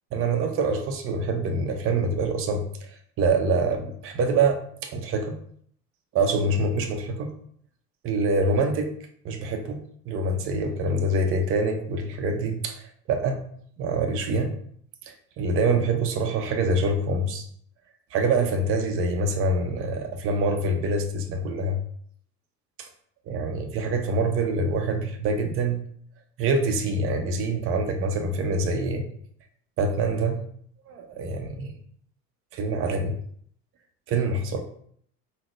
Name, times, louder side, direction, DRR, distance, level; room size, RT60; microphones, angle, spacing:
voice 1, 0.1-2.6 3.2-5.3 6.1-7.3 8.0-8.9 9.2-9.8 10.1-13.4 13.8-14.5 15.1-17.4 18.1-21.8 23.3-25.8 26.4-29.1 29.8-30.4 30.9-31.7 32.5-33.2 34.1-34.6, right 2 dB, 30° right, 4 dB, 0.5 m, -25 dB
3.7 x 2.0 x 3.0 m, 0.62 s
hypercardioid pair, 70°, 47 cm